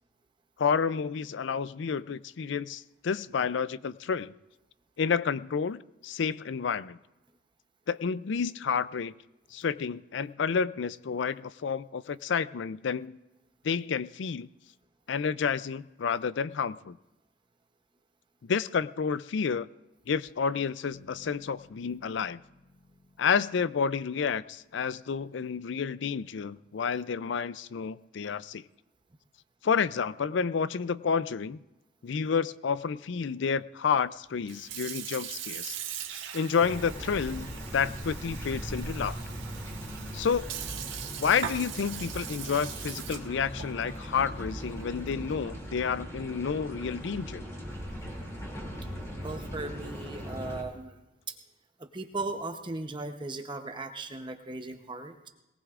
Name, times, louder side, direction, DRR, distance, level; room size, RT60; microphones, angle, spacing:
voice 1, 0.6-4.3 5.0-7.0 7.9-9.1 9.5-13.2 13.6-14.5 15.1-17.0 18.4-19.7 20.1-22.4 23.2-28.6 29.6-31.6 32.0-35.8 36.3-37.5 37.7-39.2 40.1-40.4 41.2-47.4, left 6 dB, 65° left, 17 dB, 0.4 m, -30 dB
Bass guitar, 20.9-24.9, left 2 dB, 85° left, 3.2 m, -58 dB
Sink (filling or washing) / Fill (with liquid), 34.4-45.9, right 9 dB, 75° right, 1.6 m, -41 dB
sound 1, 36.6-50.6, equal, 15° left, 2.6 m, -39 dB
voice 2, 49.2-51.0 51.3-51.4 51.8-55.3, right 2 dB, 25° right, 5 dB, 0.8 m, -37 dB
22.5 x 18.5 x 2.5 m, 1.0 s
head